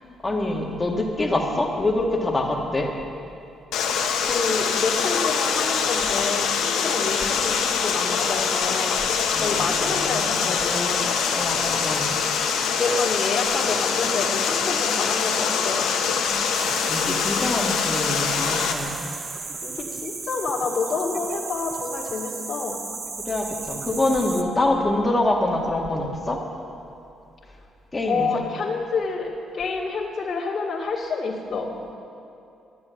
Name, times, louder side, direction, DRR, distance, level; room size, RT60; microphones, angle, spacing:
voice 1, 0.2-2.9 9.3-10.7 11.3-12.1 16.2-16.5 16.9-19.0 23.3-26.4 27.9-28.4, left 2 dB, 20° left, 0 dB, 2.0 m, -25 dB
Water, 3.7-18.7, left 6 dB, 85° left, 1.2 m, -24 dB
voice 2, 4.2-9.0 9.3-11.2 12.8-16.0 19.6-22.8 28.1-31.7, left 4 dB, 45° left, -5 dB, 2.1 m, -28 dB
sound 1, 16.5-24.4, right 4 dB, 40° right, 0.9 m, -35 dB
12.5 x 7.5 x 9.5 m, 2.6 s
cardioid pair, 90°, 0 cm